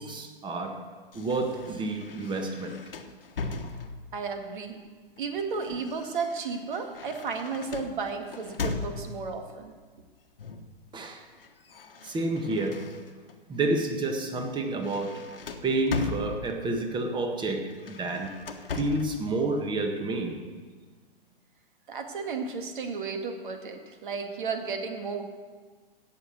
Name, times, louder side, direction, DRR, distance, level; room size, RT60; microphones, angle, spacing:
voice 1, 0.0-2.8 10.9-11.2 12.0-13.0 13.5-15.3 15.6-18.4 18.7-20.5, right 2 dB, 15° right, 5 dB, 1.5 m, -30 dB
sound 1, 1.1-4.2 5.2-9.4 10.4-10.8 11.1-13.4 13.8-14.0 14.4-16.8 17.7-19.2, left 4 dB, 70° left, 1.3 m, -38 dB
voice 2, 4.1-4.8 5.2-9.7 21.9-25.2, right 5 dB, 60° right, 5 dB, 2.1 m, -33 dB
16.5 x 6.8 x 7.6 m, 1.5 s
figure-of-eight pair, 110°, 29 cm